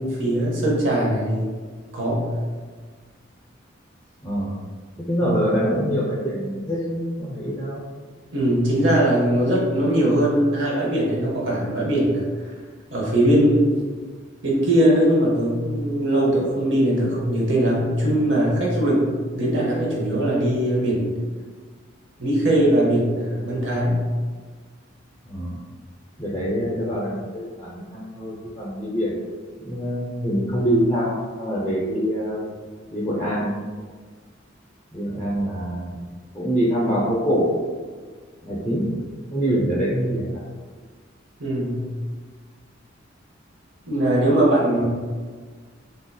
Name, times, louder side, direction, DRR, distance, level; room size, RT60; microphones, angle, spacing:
voice 1, 0.0-1.5 1.9-2.3 8.3-12.3 12.9-13.8 14.4-19.1 19.3-21.1 22.2-24.0 41.4-41.8 43.9-44.8, right 1 dB, 65° right, -4 dB, 0.8 m, -20 dB
voice 2, 4.2-4.6 5.1-7.8 25.3-25.6 26.2-29.1 29.6-32.4 32.9-33.5 34.9-36.0 36.3-37.5 38.4-38.9 39.3-40.4, equal, 15° left, -7 dB, 0.5 m, -24 dB
3.5 x 2.7 x 2.2 m, 1.5 s
head